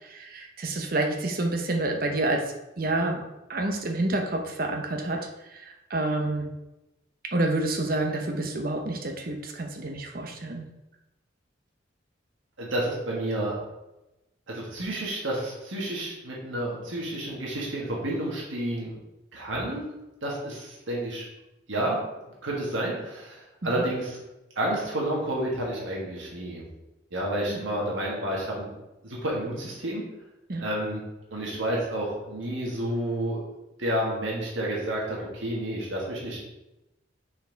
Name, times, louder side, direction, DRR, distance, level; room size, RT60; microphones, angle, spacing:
voice 1, 0.0-3.2 3.5-6.5 7.3-10.7 23.6-23.8 27.5-27.6 30.5-30.6, right 2 dB, 50° right, 3 dB, 0.9 m, -29 dB
voice 2, 12.6-13.6 14.5-19.0 19.3-19.9 20.2-21.2 21.7-22.0 22.4-24.2 24.6-26.6 27.1-28.7 29.0-30.0 30.6-31.0 31.3-33.4 33.8-36.4, right 1 dB, 80° right, -4 dB, 1.8 m, -30 dB
5.9 x 4.7 x 4.6 m, 0.96 s
head